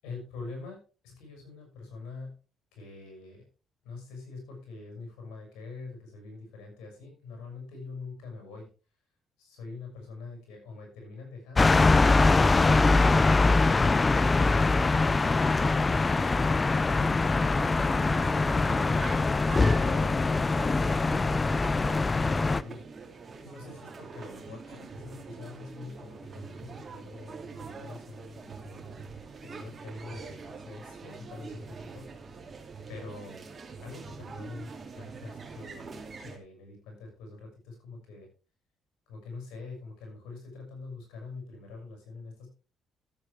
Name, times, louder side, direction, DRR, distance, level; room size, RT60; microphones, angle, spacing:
voice 1, 0.0-2.3 2.7-3.5 3.8-8.7 9.4-11.8 23.4-29.1 29.4-32.3 32.9-33.4 33.8-35.9 36.2-38.3 39.1-42.5, left 3 dB, 85° left, 2 dB, 6.2 m, -45 dB
sound 1, 11.6-22.6, left 3 dB, 25° left, 0.4 m, -23 dB
sound 2, 17.4-36.4, right 4 dB, 35° right, 2.7 m, -44 dB
14.0 x 8.2 x 3.4 m, 0.33 s
cardioid pair, 80°, 0 cm